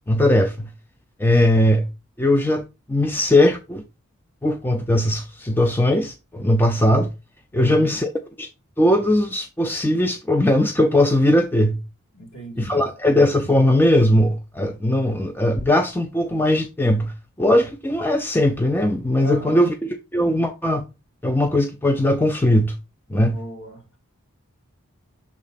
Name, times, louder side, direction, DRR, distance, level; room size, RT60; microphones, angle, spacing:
voice 1, 0.1-0.7 1.2-1.9 2.2-2.6 2.9-3.8 4.4-7.1 7.5-8.1 8.4-8.5 8.8-11.8 12.6-20.8 21.2-22.8 23.1-23.4, left 1 dB, 10° left, 0.4 m, -19 dB
voice 2, 7.5-8.0 12.1-12.9 19.2-19.7 23.1-23.8, left 1 dB, 55° left, 2.1 m, -36 dB
6.4 x 3.6 x 4.1 m
head